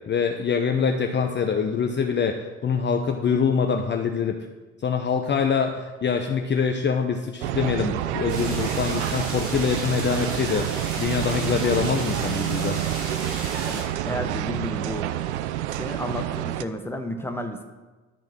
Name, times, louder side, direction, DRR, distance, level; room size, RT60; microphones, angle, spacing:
voice 1, 0.1-2.4 2.6-4.3 4.8-12.8, left 6 dB, 30° left, 4 dB, 0.8 m, -24 dB
sound 1, 7.4-16.6, right 13 dB, 75° right, 0.5 m, -28 dB
sound 2, 8.3-13.8, right 2 dB, 60° right, 2.5 m, -34 dB
voice 2, 13.6-15.1 15.7-17.6, left 1 dB, 5° left, 7 dB, 1.2 m, -32 dB
12.5 x 4.5 x 6.1 m, 1.2 s
figure-of-eight pair, 50°, 35 cm